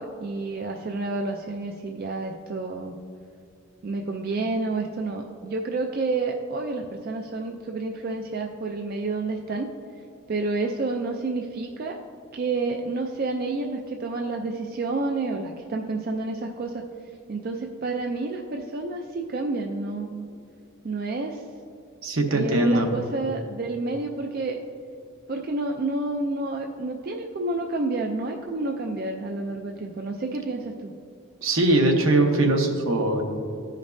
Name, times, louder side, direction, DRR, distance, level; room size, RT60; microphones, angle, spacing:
voice 1, 0.0-3.0 3.8-9.7 10.3-12.0 12.3-16.8 17.3-20.3 20.8-21.5 22.3-24.6 25.3-30.9, right 3 dB, 45° right, 3 dB, 0.4 m, -29 dB
voice 2, 22.0-22.9 31.4-33.2, right 2 dB, 70° right, 3 dB, 0.9 m, -21 dB
14.5 x 5.2 x 2.6 m, 2.5 s
head